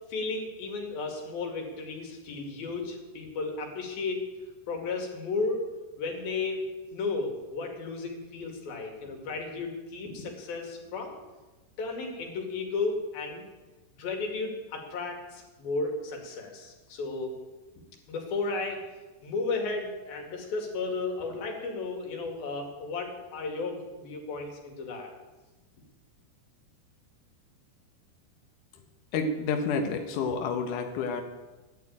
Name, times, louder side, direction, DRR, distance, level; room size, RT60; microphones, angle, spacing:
voice 1, 0.1-4.3 4.7-5.7 6.0-6.6 6.9-11.2 11.8-13.5 14.0-17.3 18.1-18.8 19.2-25.1, left 3 dB, 55° left, 2 dB, 3.7 m, -34 dB
voice 2, 29.1-31.2, left 4 dB, 75° left, 4 dB, 1.9 m, -29 dB
13.5 x 11.0 x 8.7 m, 1.2 s
omnidirectional pair, 5.6 m